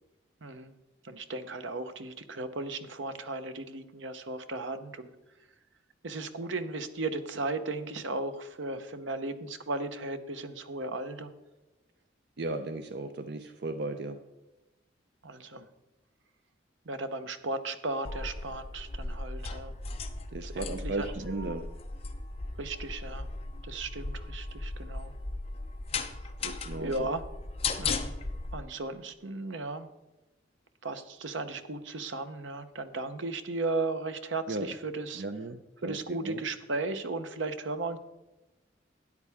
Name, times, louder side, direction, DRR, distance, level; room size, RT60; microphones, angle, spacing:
voice 1, 0.4-0.7 1.0-5.1 6.0-11.3 15.2-15.6 16.9-19.7 20.4-21.1 22.6-23.3 23.6-25.1 26.2-26.3 26.8-27.2 27.8-28.1 28.5-29.9 30.8-35.2 35.8-38.0, right 3 dB, 80° right, 9 dB, 0.9 m, -36 dB
voice 2, 12.4-14.2 20.3-21.7 26.4-27.1 34.5-34.7 35.1-36.4, right 2 dB, 60° right, 8 dB, 0.6 m, -36 dB
sound 1, 18.0-28.5, left 3 dB, 30° left, 0.8 m, -37 dB
13.0 x 9.7 x 3.5 m, 1.0 s
head